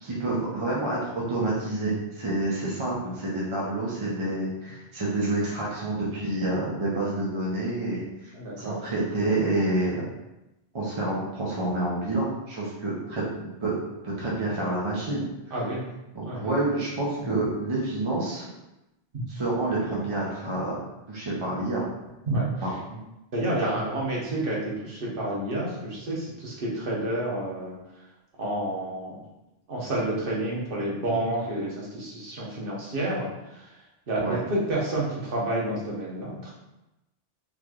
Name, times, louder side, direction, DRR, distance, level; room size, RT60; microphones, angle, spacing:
voice 1, 0.0-10.0 10.7-13.8 14.0-15.2 16.1-18.5 19.3-20.8 21.1-21.8 22.6-22.7 34.2-34.4, right 2 dB, 35° right, -5 dB, 0.5 m, -28 dB
voice 2, 8.3-8.8 15.5-15.8 16.2-16.5 17.2-17.3 19.1-19.2 22.3-22.5 23.3-27.8 28.4-29.2 29.7-33.7 34.1-36.5, right 1 dB, 50° right, -5 dB, 1.2 m, -29 dB
3.9 x 3.1 x 2.4 m, 0.95 s
omnidirectional pair, 1.2 m